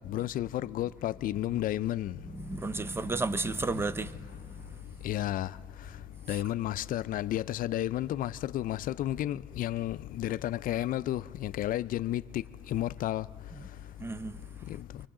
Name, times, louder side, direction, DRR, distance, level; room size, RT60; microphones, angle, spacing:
voice 1, 0.1-2.2 5.0-5.5 6.3-12.4 12.7-13.3, left 13 dB, 55° left, 0.4 m, -32 dB
voice 2, 2.4-4.2 14.0-14.4, right 3 dB, 15° right, 0.5 m, -32 dB
29.0 x 24.0 x 3.7 m
cardioid pair, 110°, 17 cm